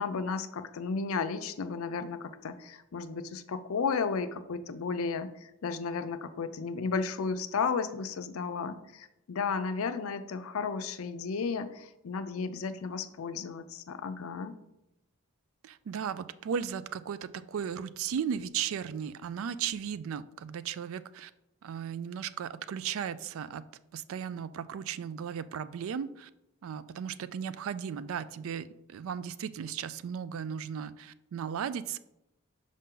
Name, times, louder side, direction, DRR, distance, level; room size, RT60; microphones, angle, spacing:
voice 1, 0.0-14.5, left 5 dB, 80° left, 10 dB, 0.5 m, -33 dB
voice 2, 15.6-21.3 21.6-23.7 23.9-26.3 26.6-32.0, right 8 dB, 70° right, 15 dB, 0.3 m, -36 dB
5.6 x 5.0 x 3.7 m, 0.89 s
head